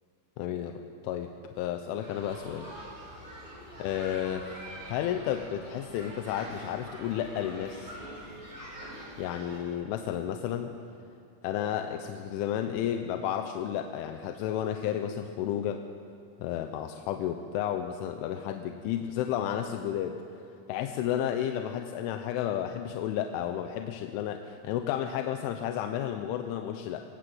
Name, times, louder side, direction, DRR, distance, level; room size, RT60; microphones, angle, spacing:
voice 1, 0.4-0.7 1.0-1.3 1.6-2.7 3.4-8.0 9.2-10.7 11.4-15.8 16.4-20.2 20.7-27.0, left 10 dB, 90° left, 5 dB, 3.4 m, -32 dB
sound 1, 2.0-9.6, right 1 dB, 40° right, 9.4 m, -45 dB
25.5 x 18.5 x 7.9 m, 2.6 s
omnidirectional pair, 5.4 m